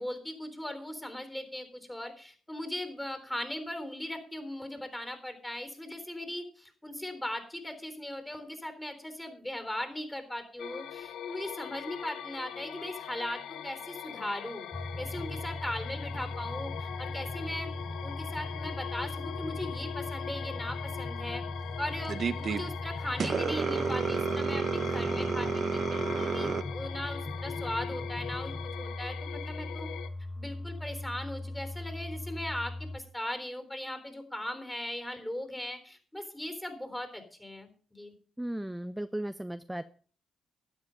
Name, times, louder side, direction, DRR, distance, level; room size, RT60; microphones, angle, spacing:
voice 1, 0.0-14.7 15.0-17.8 18.0-21.4 21.8-29.9 30.4-38.1, left 1 dB, 10° left, 8 dB, 3.8 m, -38 dB
sound 1, 10.6-30.1, left 9 dB, 80° left, 0.8 m, -42 dB
sound 2, 14.7-33.0, left 2 dB, 30° left, 1.0 m, -39 dB
sound 3, 22.1-22.6 23.2-26.6, right 6 dB, 55° right, 0.9 m, -30 dB
voice 2, 38.4-39.8, right 1 dB, 10° right, 11 dB, 0.7 m, -36 dB
12.5 x 9.4 x 5.3 m, 0.43 s
supercardioid pair, 50°, 0 cm